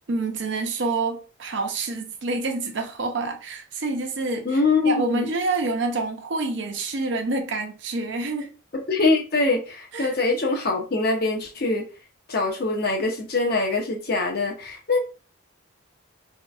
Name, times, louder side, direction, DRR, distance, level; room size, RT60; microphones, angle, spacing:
voice 1, 0.1-8.5 9.9-10.1, right 3 dB, 65° right, 0.6 m, -27 dB
voice 2, 4.5-5.3 8.7-11.8 12.3-15.0, left 3 dB, 50° left, 0.7 m, -23 dB
2.7 x 2.5 x 2.3 m
head